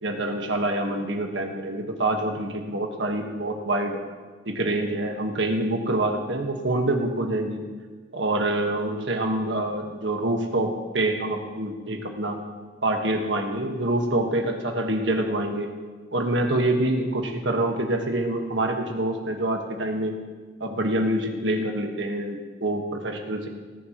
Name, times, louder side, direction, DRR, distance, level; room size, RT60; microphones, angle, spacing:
voice 1, 0.0-4.0 4.4-7.6 8.1-12.4 12.8-15.7 16.1-20.1 20.6-23.5, right 1 dB, 85° right, 3 dB, 1.5 m, -26 dB
18.5 x 10.5 x 3.1 m, 1.4 s
head